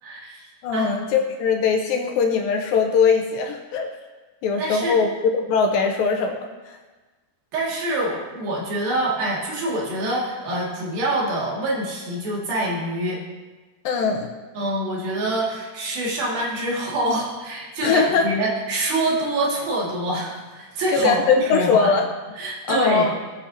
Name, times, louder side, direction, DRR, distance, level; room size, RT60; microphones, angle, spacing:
voice 1, 0.0-1.0 4.6-5.0 7.5-13.2 14.6-21.9 22.4-23.1, right 1 dB, 60° right, -5 dB, 3.9 m, -26 dB
voice 2, 0.6-3.9 4.4-6.8 13.8-14.3 17.8-18.3 20.9-22.1 22.7-23.1, left 5 dB, 80° left, 3 dB, 2.2 m, -21 dB
18.5 x 8.7 x 2.9 m, 1.3 s
omnidirectional pair, 4.9 m